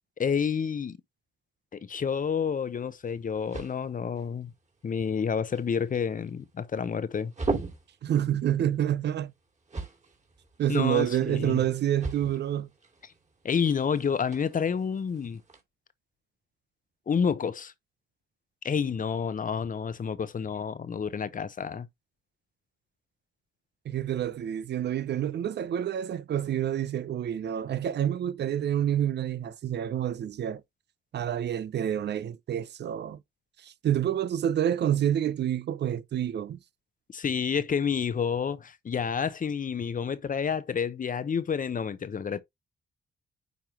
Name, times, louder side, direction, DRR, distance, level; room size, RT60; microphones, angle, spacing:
voice 1, 0.2-1.0 1.7-4.5 4.8-7.3 10.7-11.6 13.4-15.4 17.1-17.7 18.6-21.9 37.1-42.4, left 6 dB, 45° left, 0.8 m, -29 dB
sound 1, 2.2-15.6, right 3 dB, 35° right, 2.7 m, -41 dB
voice 2, 8.0-9.3 10.6-12.7 23.8-30.6 31.1-33.2 33.6-36.6, right 10 dB, 65° right, 0.6 m, -28 dB
9.3 x 3.5 x 2.9 m
cardioid pair, 70°, 19 cm